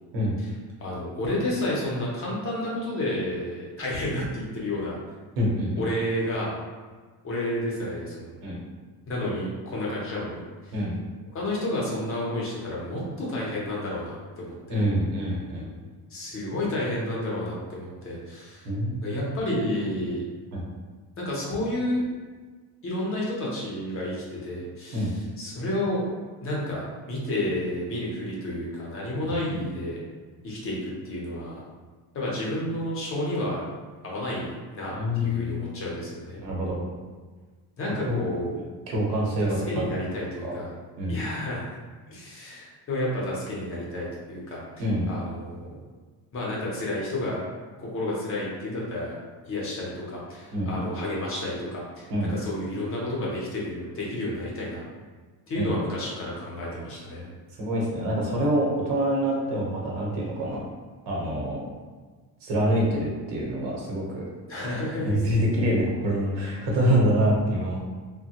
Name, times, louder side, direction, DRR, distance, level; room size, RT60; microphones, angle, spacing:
voice 1, 0.8-5.0 5.8-6.5 7.2-8.4 9.1-10.7 11.3-14.8 16.1-18.7 19.0-20.2 21.2-22.0 22.8-26.0 26.4-30.0 30.4-31.6 32.1-33.6 34.0-36.4 37.8-38.5 39.4-40.7 41.1-41.7 42.1-44.6 45.1-45.7 46.3-47.4 47.8-49.2 49.5-54.8 55.5-57.3 64.5-65.3, left 1 dB, 35° left, -5 dB, 0.6 m, -31 dB
voice 2, 5.4-5.8 8.4-8.5 10.7-11.0 14.7-15.7 18.6-19.0 20.5-20.6 24.9-25.1 29.2-29.3 34.9-35.6 36.4-36.8 38.1-38.2 38.9-39.8 40.4-40.6 41.0-41.2 44.8-45.1 50.5-50.8 52.1-52.3 55.6-55.7 57.6-60.6 61.1-61.6 62.4-64.2 64.6-64.7 65.1-67.8, equal, 80° right, -3 dB, 1.0 m, -26 dB
3.2 x 2.2 x 2.8 m, 1.4 s
cardioid pair, 180°, 40 cm